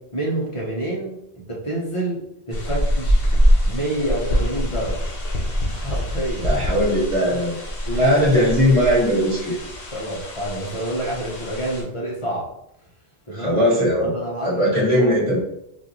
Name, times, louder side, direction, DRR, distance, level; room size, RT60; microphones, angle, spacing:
voice 1, 0.1-3.3 3.6-5.3 5.7-6.5 7.2-7.3 7.8-8.4 9.5-9.6 9.9-12.5 13.3-13.6 14.0-14.6 15.0-15.1, right 1 dB, 30° left, -3 dB, 1.0 m, -28 dB
sound 1, 2.5-11.8, equal, 60° left, 1.2 m, -24 dB
voice 2, 6.4-7.6 8.0-9.5 13.3-14.1 14.4-15.4, equal, 30° right, -6 dB, 1.3 m, -19 dB
4.3 x 2.6 x 3.0 m, 0.79 s
omnidirectional pair, 1.1 m